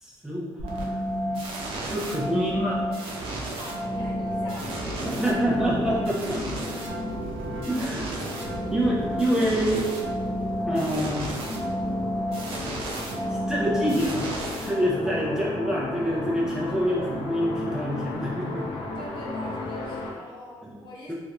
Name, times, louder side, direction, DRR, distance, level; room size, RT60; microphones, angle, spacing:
voice 1, 0.0-1.0 1.8-2.8 5.1-6.4 7.7-8.1 8.7-9.8 10.7-11.3 13.3-14.3 14.6-18.7 20.6-20.8, equal, 5° right, -6 dB, 0.6 m, -26 dB
sound 1, 0.6-15.2, right 1 dB, 75° right, 0.7 m, -31 dB
voice 2, 3.6-5.5 15.0-15.2 18.7-21.1, equal, 55° left, -4 dB, 0.9 m, -43 dB
sound 2, 3.8-20.1, left 3 dB, 90° left, 0.7 m, -36 dB
3.2 x 2.5 x 2.8 m, 1.5 s
cardioid pair, 125°, 9 cm